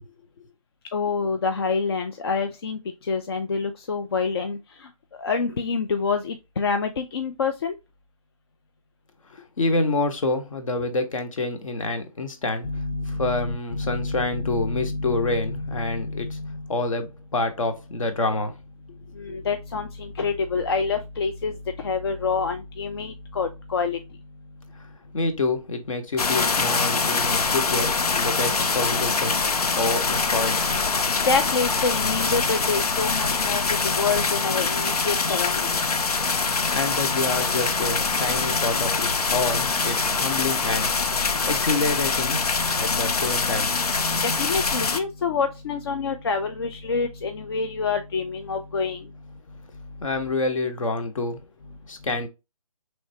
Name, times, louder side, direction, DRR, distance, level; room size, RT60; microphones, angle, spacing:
voice 1, 0.9-4.9 5.2-7.8 12.6-16.7 19.1-24.0 31.2-35.8 44.2-49.1, left 4 dB, 40° left, 0.4 m, -27 dB
voice 2, 9.3-12.7 13.1-16.4 16.7-18.5 19.3-19.4 25.1-29.4 29.7-30.6 36.7-40.9 41.5-42.5 42.8-43.7 50.0-51.4 51.9-52.3, left 3 dB, 60° left, 1.1 m, -27 dB
sound 1, 26.2-45.0, left 4 dB, 90° left, 0.6 m, -24 dB
4.3 x 3.3 x 2.7 m
hypercardioid pair, 155°, 19 cm